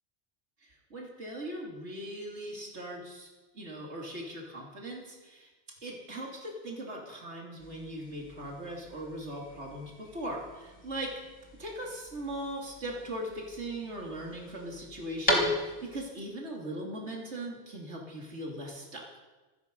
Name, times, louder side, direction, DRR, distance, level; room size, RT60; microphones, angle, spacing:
voice 1, 0.6-3.3 3.5-5.5 5.8-11.1 11.6-19.2, right 1 dB, 80° right, -1 dB, 3.1 m, -39 dB
sound 1, 7.6-16.1, left 1 dB, 30° left, 3.5 m, -37 dB
26.0 x 10.0 x 5.4 m, 1.2 s
omnidirectional pair, 1.2 m